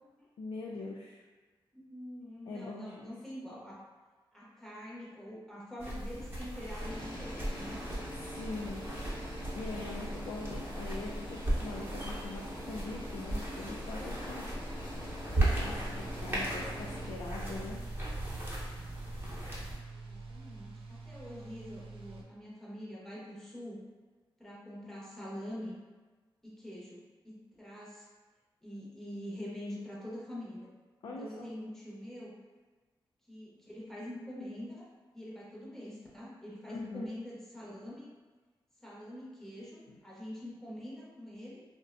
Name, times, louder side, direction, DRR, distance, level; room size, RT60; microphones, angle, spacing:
voice 1, 0.4-1.2 2.5-3.1 8.2-8.9 9.5-14.5 15.4-17.8 31.0-31.5 36.7-37.1 39.9-40.0, left 3 dB, 80° left, -4 dB, 0.4 m, -42 dB
voice 2, 1.7-3.8 4.3-7.8 19.9-23.8 24.4-25.8 26.4-28.1 28.6-30.7 31.0-32.3 33.3-34.9 35.1-38.1 38.8-41.6, left 1 dB, 5° left, -6 dB, 0.9 m, -45 dB
sound 1, 5.8-19.8, right 1 dB, 25° right, 0.9 m, -37 dB
sound 2, 6.8-17.1, left 1 dB, 55° left, 0.8 m, -44 dB
sound 3, 15.4-22.2, right 4 dB, 75° right, 0.4 m, -46 dB
2.5 x 2.1 x 2.5 m, 1.3 s
cardioid pair, 55°, 9 cm